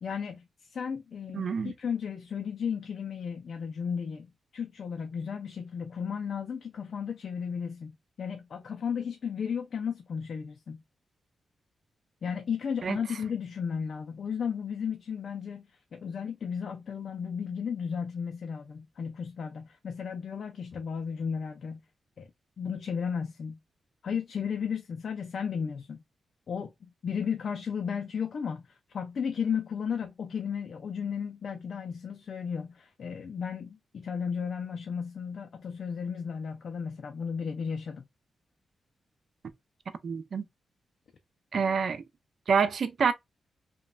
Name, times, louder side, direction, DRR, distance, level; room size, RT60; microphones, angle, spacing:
voice 1, 0.0-4.3 4.5-7.9 8.2-10.8 12.2-21.8 22.2-22.3 22.6-23.6 24.0-26.0 26.5-38.0, left 6 dB, 55° left, 0.3 m, -34 dB
voice 2, 1.3-1.7 12.8-13.0 40.0-40.4 41.5-42.0 42.5-43.1, right 6 dB, 55° right, 0.3 m, -27 dB
3.0 x 2.1 x 2.3 m
wide cardioid pair, 130°, 0 cm